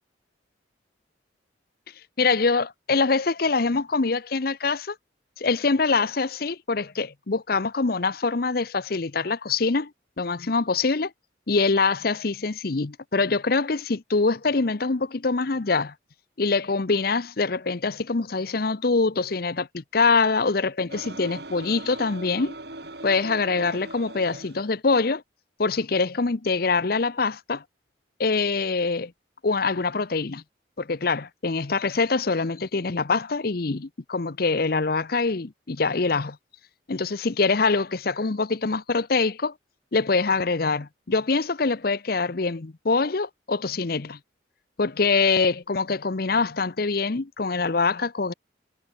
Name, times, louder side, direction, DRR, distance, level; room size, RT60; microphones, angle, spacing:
voice 1, 2.2-5.0 5.4-9.9 10.2-11.1 11.5-15.9 16.4-22.5 23.0-25.2 25.6-27.6 28.2-29.1 29.4-30.4 30.8-36.4 36.9-39.5 39.9-44.2 44.8-48.3, left 4 dB, 50° left, 0.7 m, -24 dB
sound 1, 20.9-24.6, right 2 dB, 55° right, 3.9 m, -40 dB
head